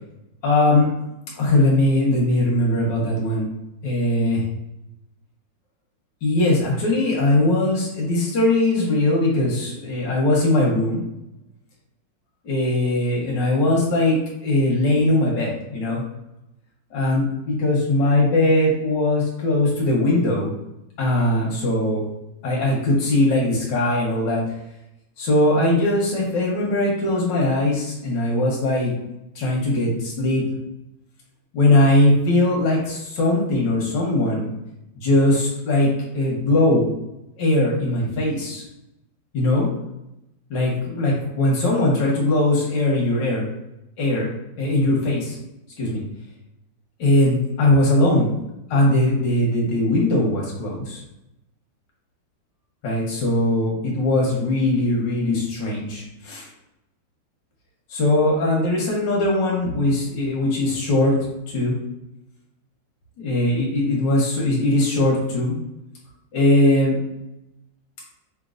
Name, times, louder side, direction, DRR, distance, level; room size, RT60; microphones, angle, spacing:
voice 1, 0.4-0.9 1.4-3.5 3.8-4.4 6.2-11.0 12.5-16.0 16.9-20.5 21.0-22.0 22.4-24.4 25.2-28.9 29.4-30.4 31.5-34.5 35.0-36.9 37.4-38.6 39.3-39.7 40.5-43.5 44.0-44.3 44.6-45.4 45.8-46.0 47.0-48.3 48.7-51.0 52.8-56.5 57.9-61.2 61.5-61.8 63.2-65.5 66.3-67.0, left 1 dB, 85° left, -3 dB, 1.8 m, -20 dB
5.2 x 2.7 x 2.5 m, 0.88 s
omnidirectional pair, 1.9 m